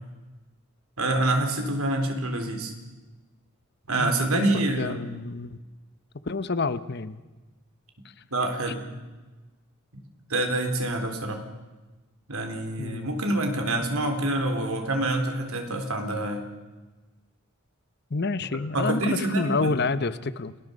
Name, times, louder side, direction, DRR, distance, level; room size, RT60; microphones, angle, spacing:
voice 1, 1.0-2.7 3.9-5.0 8.3-8.8 10.3-11.4 12.3-16.5 18.7-19.9, right 2 dB, 85° right, 5 dB, 4.0 m, -26 dB
voice 2, 3.9-5.6 6.3-7.2 12.8-13.1 18.1-20.5, left 3 dB, 50° left, 14 dB, 0.9 m, -28 dB
29.5 x 20.5 x 5.4 m, 1.2 s
head